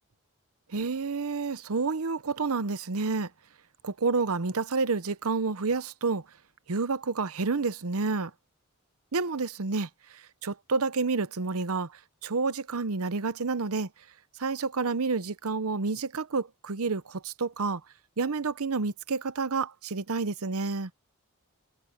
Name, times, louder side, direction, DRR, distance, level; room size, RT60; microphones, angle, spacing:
voice 1, 0.7-3.3 3.8-6.2 6.7-8.3 9.1-13.9 14.4-17.8 18.2-20.9, right 4 dB, 75° right, 0.8 m, -29 dB
head